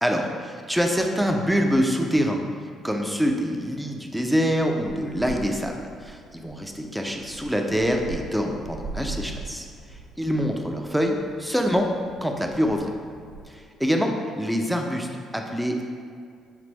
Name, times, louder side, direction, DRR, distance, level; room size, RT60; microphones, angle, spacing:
voice 1, 0.0-2.4 2.8-9.7 10.2-11.9 12.2-12.9 13.5-14.1 14.4-15.8, equal, 5° right, 2 dB, 0.5 m, -25 dB
sound 1, 4.6-13.5, right 3 dB, 90° right, 0.7 m, -41 dB
5.1 x 2.6 x 3.3 m, 2.3 s
hypercardioid pair, 50°, 0 cm